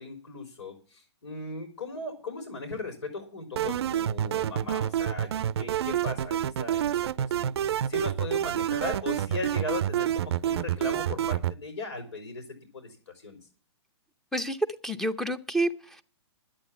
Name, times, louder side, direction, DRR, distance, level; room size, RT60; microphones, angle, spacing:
voice 1, 0.0-6.9 7.4-12.4 12.7-12.9 13.2-13.4, left 2 dB, 90° left, 3.7 m, -37 dB
sound 1, 3.6-11.5, right 10 dB, 65° right, 0.5 m, -28 dB
voice 2, 14.8-16.0, right 1 dB, ahead, 0.7 m, -29 dB
11.5 x 8.7 x 7.2 m
hypercardioid pair, 145°, 15 cm